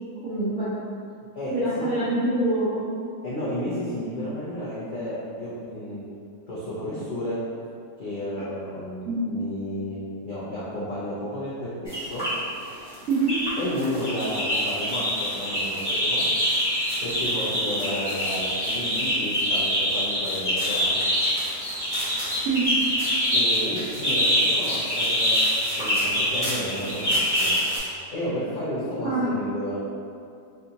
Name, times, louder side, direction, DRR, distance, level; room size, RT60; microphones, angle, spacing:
voice 1, 0.2-0.7 1.5-2.9 9.1-9.2 13.1-13.4 22.4-22.7 29.0-29.3, right 2 dB, 55° right, -12 dB, 0.9 m, -25 dB
voice 2, 1.3-1.9 3.2-6.0 6.5-7.4 8.0-12.3 13.6-16.2 17.0-21.0 23.3-25.3 25.8-27.6 28.1-29.8, equal, 85° left, -11 dB, 0.4 m, -32 dB
sound 1, 11.9-12.4 12.9-13.5 13.8-27.8, equal, 15° right, 1.3 m, -25 dB
3.5 x 2.7 x 2.7 m, 2.5 s
omnidirectional pair, 1.8 m